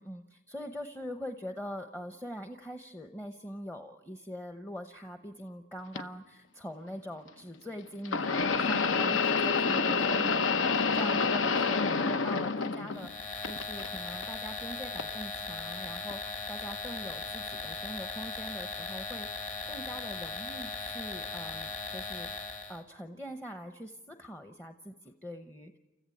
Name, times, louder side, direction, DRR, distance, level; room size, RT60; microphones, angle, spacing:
voice 1, 0.0-10.6 11.0-25.8, equal, 10° left, 7 dB, 0.8 m, -43 dB
sound 1, 6.0-6.1 8.1-13.1 13.4-14.2 15.0-15.1 16.1-16.2, left 5 dB, 70° left, 0.8 m, -28 dB
sound 2, 12.9-22.8, left 4 dB, 40° left, 2.0 m, -38 dB
28.5 x 14.5 x 9.1 m, 1.1 s
head